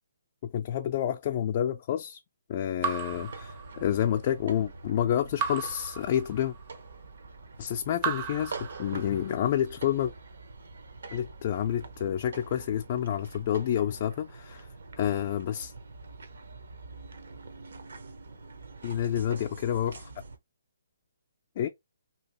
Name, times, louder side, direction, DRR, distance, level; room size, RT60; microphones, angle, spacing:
voice 1, 0.5-2.2 2.5-6.5 7.6-8.5 8.8-10.1 11.1-14.7 15.0-15.7 18.8-20.1 21.6-21.7, left 10 dB, 40° left, 0.3 m, -29 dB
Raindrop / Drip, 2.8-4.2 5.4-6.8 8.0-9.4, right 6 dB, 30° right, 0.5 m, -36 dB
sound 1, 3.1-20.4, right 3 dB, 75° right, 0.7 m, -45 dB
2.7 x 2.6 x 2.9 m
hypercardioid pair, 150°, 0 cm